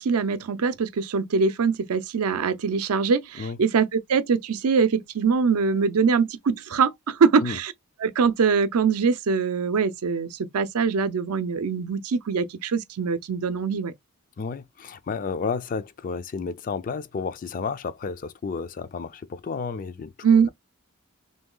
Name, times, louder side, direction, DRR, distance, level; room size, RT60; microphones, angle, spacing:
voice 1, 0.0-7.7 8.0-13.9 20.2-20.5, right 5 dB, 80° right, 0.5 m, -23 dB
voice 2, 14.4-20.5, left 5 dB, 40° left, 0.3 m, -32 dB
3.1 x 2.7 x 3.7 m
head